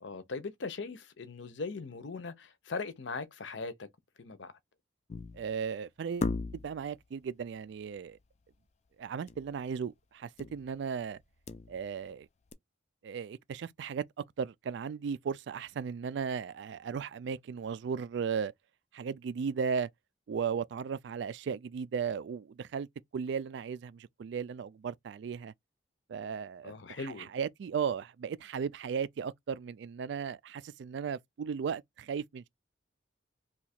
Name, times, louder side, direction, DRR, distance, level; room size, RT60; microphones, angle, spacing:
voice 1, 0.0-3.9 4.2-4.5 26.6-27.3, left 4 dB, 70° left, 0.6 m, -39 dB
sound 1, 5.1-5.6 6.2-6.9 9.3-9.5 9.8-9.9 10.4-10.7 11.2-12.1 12.5-12.6, left 3 dB, 35° left, 0.3 m, -36 dB
voice 2, 5.3-8.2 9.0-11.2 11.7-12.3 13.0-14.0 14.4-18.5 18.9-19.9 20.3-22.9 23.1-25.5 26.1-32.5, right 6 dB, 65° right, 0.3 m, -36 dB
2.8 x 2.4 x 4.2 m
head